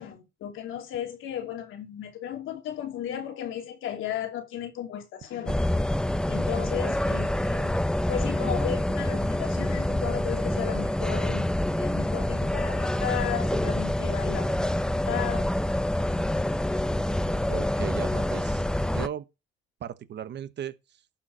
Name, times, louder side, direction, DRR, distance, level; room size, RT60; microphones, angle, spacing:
voice 1, 0.0-5.6 6.3-7.7 8.1-14.7 15.1-15.5 16.4-16.5, left 10 dB, 85° left, 2.9 m, -35 dB
sound 1, 5.5-19.1, left 1 dB, 5° left, 0.6 m, -27 dB
voice 2, 17.5-18.6 18.9-19.3 19.8-21.0, right 9 dB, 60° right, 1.0 m, -37 dB
11.5 x 4.4 x 6.1 m
cardioid pair, 90°, 20 cm